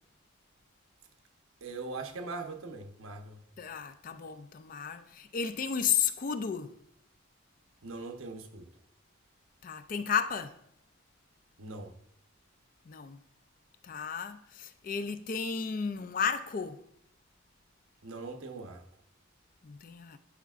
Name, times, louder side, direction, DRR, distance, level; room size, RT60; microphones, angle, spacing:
voice 1, 1.6-3.4 7.8-8.7 11.6-11.9 18.0-18.8, right 3 dB, 90° right, 1.0 m, -41 dB
voice 2, 3.6-6.7 9.6-10.6 12.9-13.2 13.8-16.8 19.6-20.2, left 7 dB, 40° left, 0.4 m, -33 dB
11.5 x 4.7 x 2.5 m
head